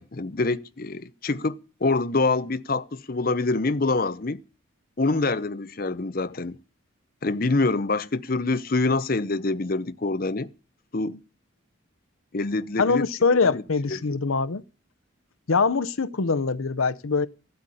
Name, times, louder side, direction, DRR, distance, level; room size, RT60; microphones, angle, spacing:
voice 1, 0.0-4.4 5.0-6.6 7.2-10.5 10.9-11.2 12.3-13.1 13.4-13.6 13.9-14.0, left 3 dB, 45° left, 0.7 m, -25 dB
voice 2, 12.8-14.6 15.5-17.3, left 4 dB, 80° left, 0.7 m, -23 dB
15.0 x 8.0 x 9.9 m
head